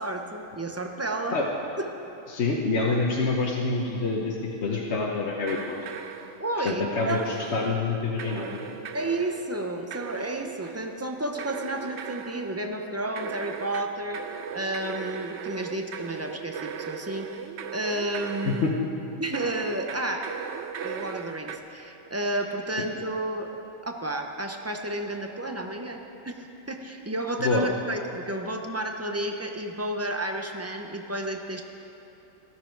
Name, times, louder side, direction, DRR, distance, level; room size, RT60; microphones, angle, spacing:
voice 1, 0.0-1.4 1.8-1.9 6.4-7.3 8.9-14.2 14.5-18.7 19.2-20.3 20.8-23.5 23.8-26.4 26.7-31.6, right 1 dB, 20° right, 3 dB, 0.4 m, -31 dB
voice 2, 2.3-4.4 4.6-5.8 6.6-8.7 18.4-18.7 27.4-27.7, left 3 dB, 55° left, -2 dB, 1.2 m, -26 dB
sound 1, 5.5-6.8 7.1-7.8 8.2-9.5 9.9-10.9 11.4-12.5 13.2-18.8 19.3-21.6, right 7 dB, 65° right, 0.8 m, -38 dB
14.0 x 13.0 x 4.6 m, 2.9 s
omnidirectional pair, 1.5 m